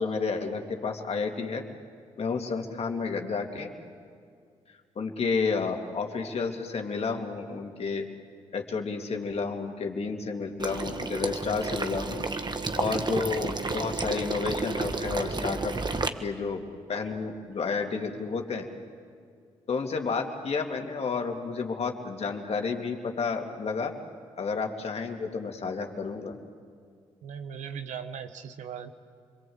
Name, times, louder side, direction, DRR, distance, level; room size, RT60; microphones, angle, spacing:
voice 1, 0.0-1.6 2.2-3.7 5.0-8.1 8.5-12.3 12.8-15.7 16.2-18.7 19.7-23.9 24.4-26.4, left 4 dB, 55° left, 3 dB, 2.7 m, -31 dB
Water / Liquid, 10.6-16.1, right 3 dB, 35° right, 1.7 m, -31 dB
voice 2, 27.2-28.9, right 7 dB, 75° right, 9 dB, 1.4 m, -38 dB
28.0 x 22.5 x 8.1 m, 2.2 s
hypercardioid pair, 45°, 13 cm